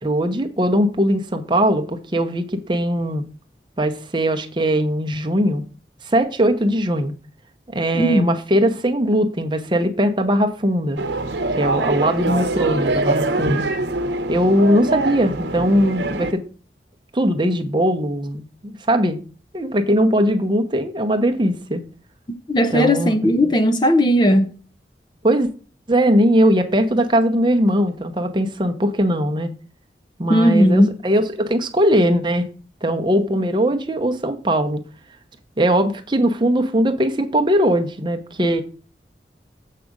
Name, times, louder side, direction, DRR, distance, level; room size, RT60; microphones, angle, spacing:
voice 1, 0.0-3.2 3.8-5.6 6.0-7.1 7.7-11.0 11.6-13.7 14.3-16.4 17.1-19.2 19.5-21.8 22.7-23.2 25.2-25.5 25.9-29.5 30.2-32.4 32.8-34.8 35.6-38.6, equal, 25° right, 0.8 m, -20 dB
voice 2, 7.9-8.3 22.5-24.5 30.3-30.9, equal, 25° left, 0.5 m, -16 dB
sound 1, 11.0-16.3, right 2 dB, 85° right, 0.8 m, -23 dB
7.5 x 4.8 x 5.2 m
head